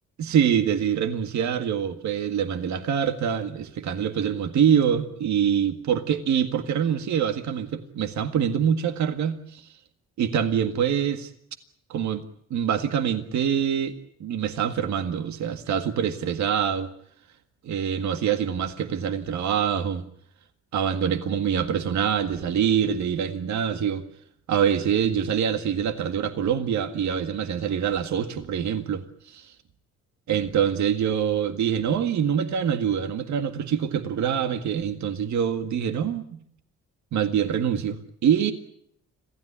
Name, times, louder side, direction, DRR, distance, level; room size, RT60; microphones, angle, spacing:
voice 1, 0.2-9.7 10.2-11.3 11.9-12.2 12.5-16.9 17.6-20.1 20.7-24.0 24.5-29.5 30.3-36.4 37.1-38.5, right 8 dB, 70° right, 8 dB, 1.9 m, -25 dB
26.5 x 16.5 x 9.8 m, 0.69 s
cardioid pair, 90°, 30 cm